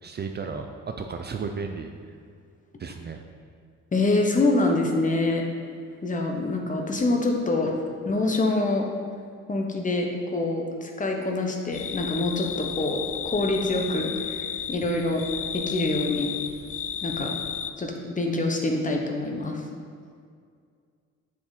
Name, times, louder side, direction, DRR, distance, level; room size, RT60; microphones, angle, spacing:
voice 1, 0.0-1.9 2.8-3.2, right 5 dB, 35° right, 5 dB, 0.5 m, -34 dB
voice 2, 3.9-5.4 6.0-8.9 9.5-15.2 15.5-16.3 17.0-17.3 17.8-19.6, left 2 dB, 25° left, 2 dB, 1.0 m, -25 dB
sound 1, 11.7-17.7, left 8 dB, 50° left, 0.5 m, -33 dB
6.9 x 5.1 x 4.0 m, 2.2 s
cardioid pair, 90°, 30 cm